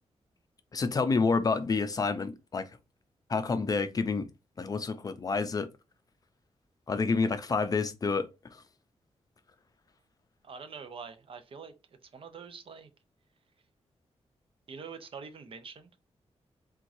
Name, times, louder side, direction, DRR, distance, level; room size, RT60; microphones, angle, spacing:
voice 1, 0.7-2.7 3.3-4.3 4.6-5.7 6.9-8.6, left 4 dB, 35° left, 0.5 m, -29 dB
voice 2, 10.4-12.9 14.7-15.9, right 5 dB, 55° right, 0.8 m, -45 dB
4.6 x 3.7 x 2.6 m
wide cardioid pair, 170°, 11 cm